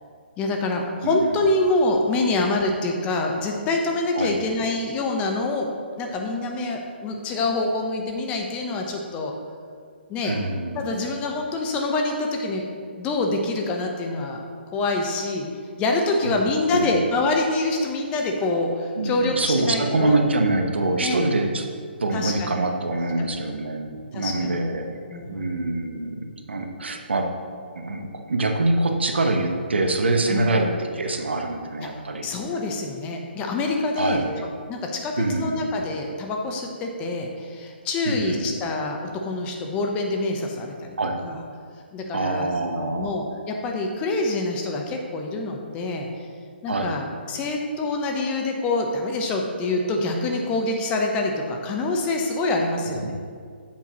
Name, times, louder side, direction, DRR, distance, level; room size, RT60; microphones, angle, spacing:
voice 1, 0.4-5.7 6.0-9.3 10.1-10.4 10.8-12.7 13.0-14.4 14.7-15.5 15.8-20.2 21.0-21.2 22.1-22.5 23.2-23.3 24.1-24.6 25.1-25.5 30.3-30.5 31.8-31.9 32.2-34.2 34.7-41.3 41.9-46.1 46.6-53.1, left 2 dB, 20° left, 2 dB, 0.8 m, -26 dB
voice 2, 1.0-1.3 4.1-4.4 10.2-11.0 16.2-16.9 18.9-21.7 22.0-27.3 27.7-32.3 34.0-34.4 35.2-35.7 38.0-38.6 41.0-41.2 42.1-43.2 46.7-47.0 53.0-53.1, right 2 dB, 75° right, 4 dB, 1.0 m, -25 dB
9.0 x 7.5 x 3.0 m, 2.1 s
figure-of-eight pair, 135°, 6 cm